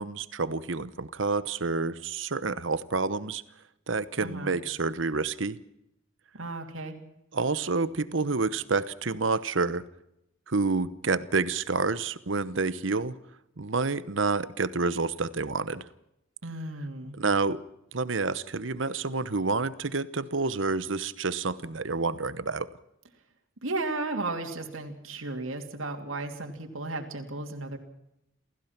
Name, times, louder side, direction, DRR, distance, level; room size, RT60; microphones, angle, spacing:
voice 1, 0.0-3.4 3.9-5.6 7.3-9.8 10.5-13.1 13.6-15.9 17.2-17.6 17.9-22.7, right 4 dB, 65° right, 15 dB, 1.0 m, -28 dB
voice 2, 4.2-4.5 6.3-6.9 16.4-17.1 23.6-27.8, right 2 dB, 85° right, 4 dB, 2.9 m, -34 dB
28.5 x 15.5 x 5.9 m, 0.84 s
head